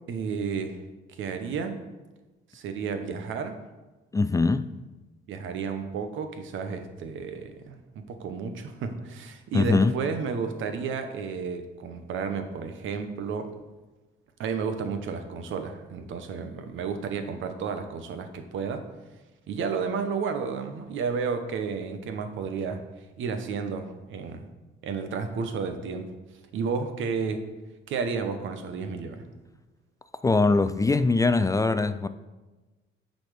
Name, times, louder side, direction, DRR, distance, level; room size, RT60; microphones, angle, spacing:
voice 1, 0.1-0.8 1.1-1.8 2.5-3.5 5.3-13.5 14.4-18.9 19.5-22.8 23.2-24.5 24.8-26.1 26.5-27.5 27.9-29.3, right 5 dB, 75° right, 1.0 m, -32 dB
voice 2, 4.1-4.7 9.5-9.9 30.2-32.1, left 3 dB, 15° left, 0.3 m, -22 dB
9.6 x 4.2 x 5.0 m
cardioid pair, 90°, 20 cm